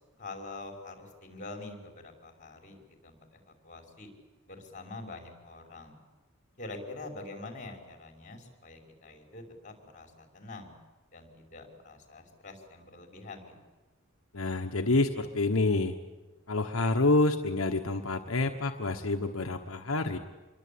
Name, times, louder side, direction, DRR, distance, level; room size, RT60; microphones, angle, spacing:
voice 1, 0.2-4.1 4.5-6.0 6.6-10.7 11.1-13.5, left 2 dB, 40° left, 3 dB, 5.3 m, -45 dB
voice 2, 14.3-15.9 16.5-20.2, left 2 dB, 75° left, 4 dB, 1.3 m, -27 dB
27.5 x 22.5 x 8.7 m, 1.2 s
head